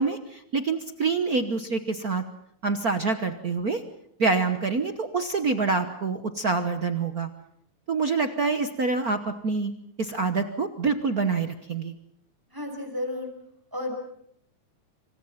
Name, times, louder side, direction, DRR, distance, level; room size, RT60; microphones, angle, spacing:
voice 1, 0.0-2.2 2.6-3.8 4.2-7.3 7.9-9.7 10.0-12.0, right 4 dB, 60° right, 9 dB, 0.9 m, -26 dB
voice 2, 12.5-13.3 13.7-13.9, left 1 dB, 5° right, 4 dB, 5.6 m, -32 dB
27.0 x 25.5 x 5.8 m, 0.70 s
omnidirectional pair, 3.4 m